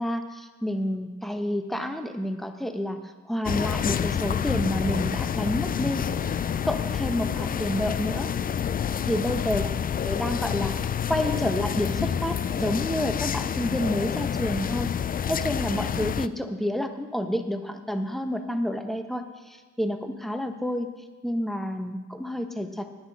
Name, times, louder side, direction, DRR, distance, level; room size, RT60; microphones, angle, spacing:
voice 1, 0.0-3.0 3.3-6.1 6.7-8.3 9.1-9.7 10.0-14.9 15.3-20.9 21.2-22.9, equal, ahead, 7 dB, 1.1 m, -29 dB
sound 1, 3.5-16.3, left 8 dB, 30° left, 0.4 m, -28 dB
10.5 x 9.5 x 6.5 m, 1.3 s
cardioid pair, 90°, 30 cm